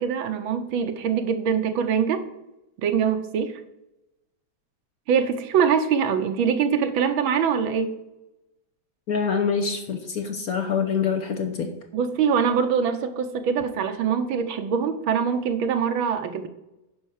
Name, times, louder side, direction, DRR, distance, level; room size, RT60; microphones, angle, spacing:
voice 1, 0.0-2.3 2.8-3.6 5.1-8.0 11.9-16.5, right 7 dB, 75° right, 8 dB, 1.6 m, -23 dB
voice 2, 9.1-11.7, left 6 dB, 55° left, 5 dB, 1.2 m, -25 dB
9.8 x 5.4 x 6.4 m, 0.92 s
omnidirectional pair, 2.3 m